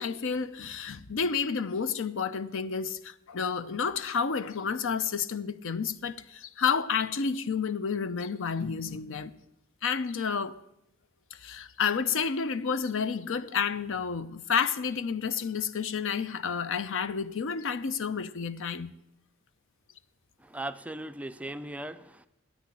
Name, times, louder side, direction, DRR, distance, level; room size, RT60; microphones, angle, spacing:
voice 1, 0.0-9.3 9.8-10.5 11.4-18.9, left 6 dB, 65° left, 0.6 m, -30 dB
voice 2, 20.4-22.3, right 1 dB, 5° right, 0.4 m, -38 dB
10.0 x 8.5 x 10.0 m
head